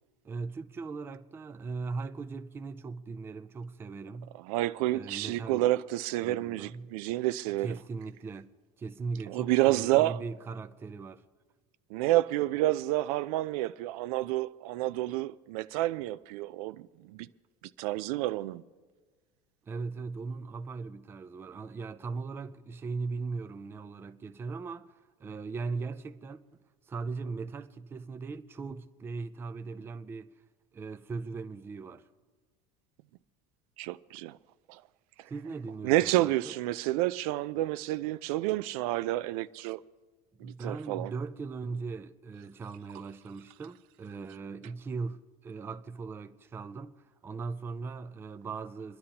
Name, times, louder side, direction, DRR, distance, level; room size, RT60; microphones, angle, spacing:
voice 1, 0.2-4.4 4.9-5.7 6.2-6.9 7.6-8.5 8.8-11.2 19.7-24.9 25.2-26.4 26.9-30.3 30.7-32.1 35.2-36.5 40.4-49.0, right 4 dB, 10° right, 0.4 m, -39 dB
voice 2, 4.5-7.8 9.3-10.2 11.9-17.3 17.8-18.6 33.8-34.4 34.7-34.8 35.8-39.8 40.4-41.1, right 16 dB, 80° right, 0.5 m, -29 dB
28.5 x 11.0 x 2.9 m
cardioid pair, 155°, 19 cm